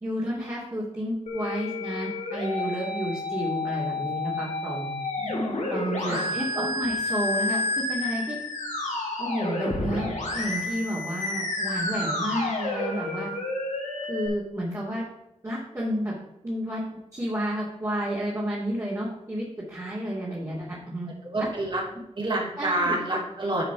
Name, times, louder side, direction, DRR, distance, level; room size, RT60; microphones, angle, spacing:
voice 1, 0.0-4.9 5.7-8.4 9.2-10.1 10.3-13.3 14.1-15.1 15.4-16.1 16.4-16.8 17.1-21.1 21.4-21.5 22.6-23.0, equal, 25° right, -6 dB, 2.3 m, -31 dB
Musical instrument, 1.3-14.3, left 2 dB, 85° left, 2.1 m, -30 dB
voice 2, 21.2-21.8 22.1-23.7, right 2 dB, 45° right, -3 dB, 3.1 m, -29 dB
10.0 x 5.0 x 4.6 m, 0.88 s
wide cardioid pair, 95°, 12 cm